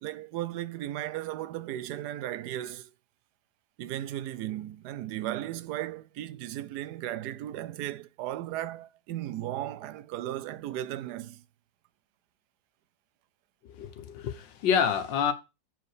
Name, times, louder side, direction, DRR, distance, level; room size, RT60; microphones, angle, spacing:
voice 1, 0.0-2.9 3.8-11.4, right 13 dB, 70° right, 1.1 m, -36 dB
voice 2, 13.7-15.3, left 7 dB, 90° left, 1.7 m, -27 dB
7.5 x 4.8 x 4.8 m
omnidirectional pair, 1.9 m